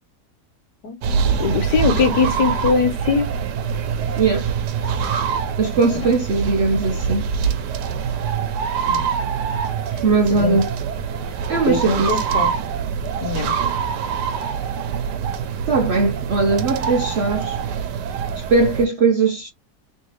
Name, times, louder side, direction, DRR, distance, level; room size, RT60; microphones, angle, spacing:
sound 1, 1.0-18.9, right 7 dB, 80° right, 1.3 m, -24 dB
voice 1, 1.3-3.3 5.9-6.1 8.9-9.1 10.4-10.6 11.7-12.5 13.2-13.5, left 5 dB, 75° left, 1.6 m, -21 dB
voice 2, 4.2-4.5 5.6-7.3 10.0-10.7 11.5-12.3 15.7-17.6 18.4-19.5, right 4 dB, 60° right, 0.7 m, -19 dB
3.4 x 3.2 x 3.1 m
omnidirectional pair, 1.8 m